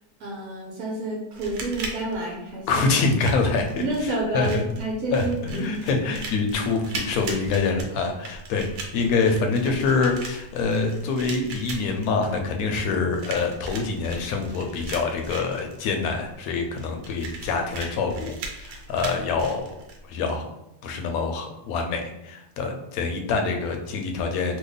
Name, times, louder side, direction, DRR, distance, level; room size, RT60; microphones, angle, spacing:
voice 1, 0.2-2.9 3.8-5.7, right 2 dB, 70° right, -3 dB, 1.1 m, -29 dB
sound 1, 1.3-20.3, right 3 dB, 85° right, 1.2 m, -39 dB
voice 2, 2.7-4.6 5.1-19.7 20.0-20.5 20.8-24.6, left 4 dB, 70° left, 4 dB, 1.0 m, -25 dB
2.9 x 2.1 x 3.8 m, 0.85 s
omnidirectional pair, 1.7 m